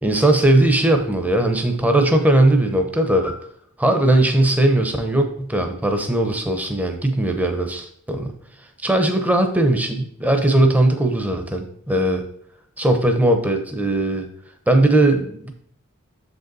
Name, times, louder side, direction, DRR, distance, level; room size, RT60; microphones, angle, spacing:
voice 1, 0.0-3.4 3.8-8.3 8.8-12.2 12.8-14.3 14.7-15.5, right 1 dB, 5° right, 5 dB, 0.7 m, -19 dB
6.7 x 5.3 x 4.0 m, 0.64 s
head